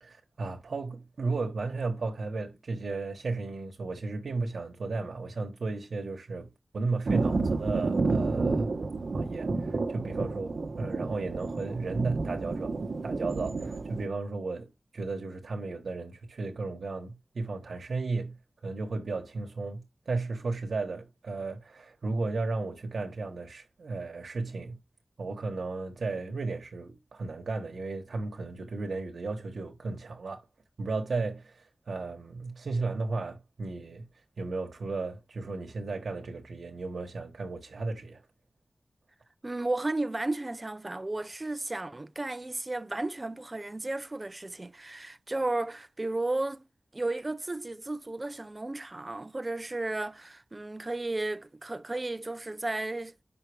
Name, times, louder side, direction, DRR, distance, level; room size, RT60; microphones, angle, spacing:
voice 1, 0.0-8.7 9.1-12.7 13.0-18.4 18.6-24.8 25.2-30.5 30.8-34.1 34.4-38.2, right 3 dB, 80° right, 1.3 m, -34 dB
Thunder, 7.1-14.1, right 3 dB, 60° right, 1.1 m, -30 dB
voice 2, 39.4-46.6 46.9-53.2, right 2 dB, 25° right, 0.6 m, -33 dB
7.3 x 5.8 x 3.4 m
wide cardioid pair, 100°, 0 cm